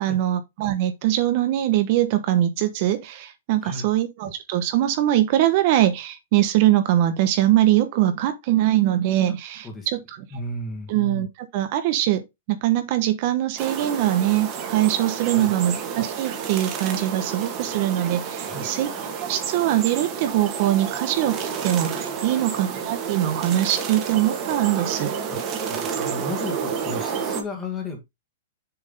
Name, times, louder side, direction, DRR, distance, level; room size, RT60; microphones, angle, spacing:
voice 1, 0.0-10.0 10.9-18.9 19.3-25.1, right 13 dB, 45° right, 1.0 m, -22 dB
voice 2, 10.3-10.9 15.3-15.5 18.4-18.7 22.2-22.4 25.3-25.4 25.8-28.0, left 2 dB, 15° left, 1.7 m, -34 dB
sound 1, 13.6-27.4, right 6 dB, 30° right, 1.7 m, -30 dB
6.9 x 3.6 x 5.4 m
hypercardioid pair, 155°, 0 cm